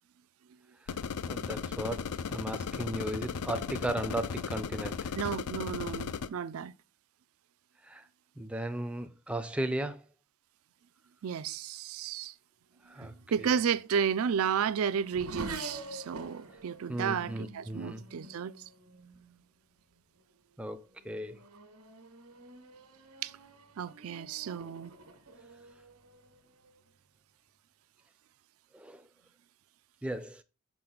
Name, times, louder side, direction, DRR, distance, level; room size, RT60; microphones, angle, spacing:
sound 1, 0.9-6.3, left 6 dB, 85° left, 0.5 m, -36 dB
voice 1, 1.3-5.0 7.9-8.0 8.4-10.0 12.9-13.1 13.4-13.5 16.9-18.0 20.6-21.4 28.7-29.0 30.0-30.4, right 1 dB, 5° right, 0.4 m, -36 dB
voice 2, 5.1-6.7 11.2-12.3 13.0-18.6 23.2-23.3 23.8-24.9, right 7 dB, 70° right, 0.4 m, -32 dB
Race car auto racing / Accelerating revving vroom, 13.8-19.4 20.2-20.5 21.0-26.9, right 2 dB, 85° right, 1.4 m, -47 dB
6.0 x 5.7 x 3.8 m
head